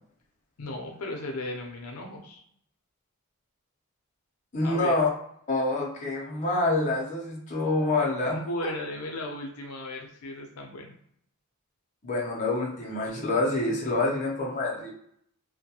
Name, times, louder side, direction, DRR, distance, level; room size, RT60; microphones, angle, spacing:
voice 1, 0.6-2.4 4.6-4.9 8.3-10.9, left 1 dB, 75° left, 1 dB, 0.5 m, -35 dB
voice 2, 4.5-5.1 5.5-8.7 12.0-14.9, left 2 dB, 35° left, -3 dB, 0.6 m, -27 dB
2.2 x 2.1 x 2.8 m, 0.68 s
head